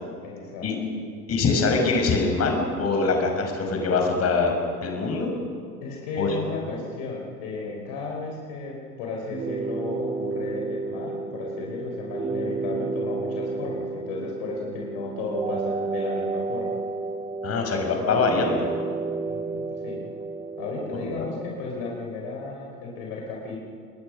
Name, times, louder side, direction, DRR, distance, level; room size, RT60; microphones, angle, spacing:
voice 1, 0.2-0.7 1.0-1.1 5.8-16.8 19.3-20.0 20.6-23.6, left 3 dB, 50° left, -1 dB, 4.5 m, -34 dB
voice 2, 1.3-4.6 4.8-5.3 6.2-6.4 17.4-18.7 20.9-21.3, left 4 dB, 30° left, 3 dB, 5.4 m, -23 dB
sound 1, 9.3-21.3, right 3 dB, 10° right, 0.6 m, -31 dB
29.5 x 20.5 x 6.4 m, 2.2 s
figure-of-eight pair, 80°, 49 cm